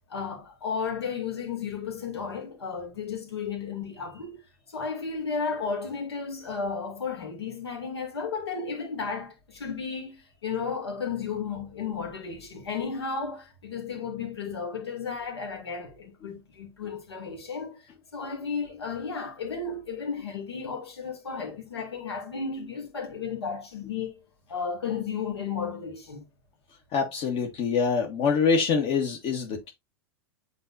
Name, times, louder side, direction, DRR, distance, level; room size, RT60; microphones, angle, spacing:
voice 1, 0.1-4.4 4.7-24.2 24.5-26.2, left 5 dB, 80° left, 2.5 m, -33 dB
voice 2, 26.9-29.7, left 5 dB, 45° left, 1.4 m, -25 dB
8.8 x 4.2 x 2.6 m
hypercardioid pair, 95°, 13 cm